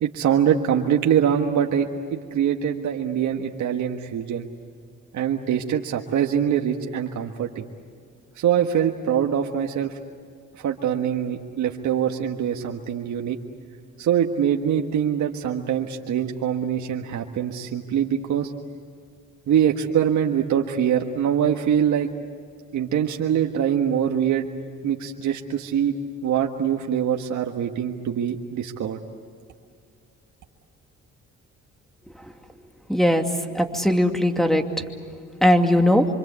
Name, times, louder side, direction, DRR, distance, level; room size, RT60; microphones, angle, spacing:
voice 1, 0.0-4.5 5.1-7.7 8.4-10.0 10.6-13.4 14.0-18.5 19.5-22.1 22.7-24.5 24.8-26.0 26.2-29.0, right 9 dB, 75° right, 2 dB, 1.6 m, -23 dB
voice 2, 32.9-33.2 33.5-34.6 35.4-36.0, left 1 dB, ahead, 5 dB, 2.6 m, -19 dB
26.5 x 25.5 x 8.3 m, 2.2 s
cardioid pair, 90°, 30 cm